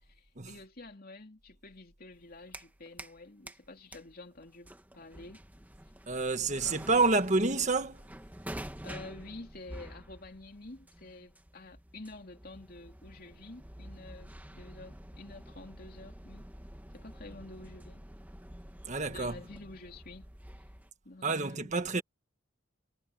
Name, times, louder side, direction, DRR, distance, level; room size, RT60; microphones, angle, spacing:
voice 1, 0.0-5.4 8.8-16.4 16.9-18.0 19.1-20.3 21.0-21.8, left 2 dB, 50° left, 2.9 m, -49 dB
sound 1, 2.1-3.2 3.5-20.9, right 1 dB, 10° right, 1.5 m, -48 dB
voice 2, 6.1-8.0 18.9-19.3 21.2-22.0, right 3 dB, 40° right, 1.6 m, -28 dB
head